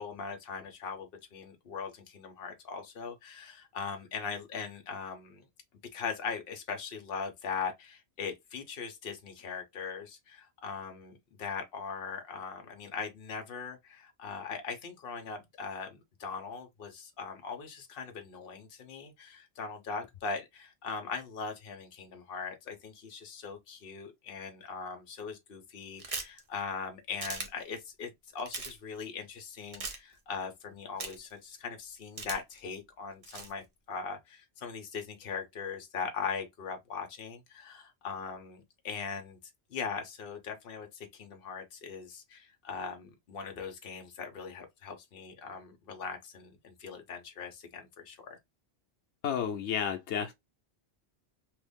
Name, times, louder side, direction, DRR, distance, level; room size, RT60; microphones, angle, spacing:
voice 1, 0.0-5.5 5.9-39.4 39.7-48.4, left 5 dB, 60° left, 1.0 m, -40 dB
sound 1, 26.0-26.4 27.2-27.5 28.4-28.7 29.7-30.0 31.0-31.3 32.2-32.6 33.2-33.5, right 4 dB, 35° right, 0.7 m, -38 dB
voice 2, 49.2-50.3, left 8 dB, 85° left, 0.9 m, -31 dB
2.9 x 2.6 x 3.5 m
omnidirectional pair, 1.1 m